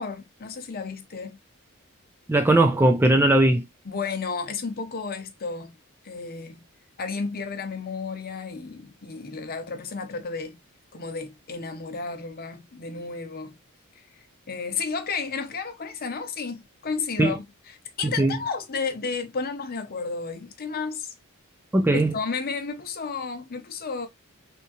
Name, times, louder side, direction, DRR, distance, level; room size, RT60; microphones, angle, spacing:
voice 1, 0.0-1.4 3.9-5.7 6.0-6.6 7.0-10.6 10.9-13.6 14.5-21.1 21.9-24.1, left 4 dB, 45° left, 0.7 m, -32 dB
voice 2, 2.3-3.6 17.2-17.4 18.0-18.4 21.7-22.1, right 1 dB, 10° right, 0.3 m, -19 dB
3.6 x 2.7 x 2.7 m
head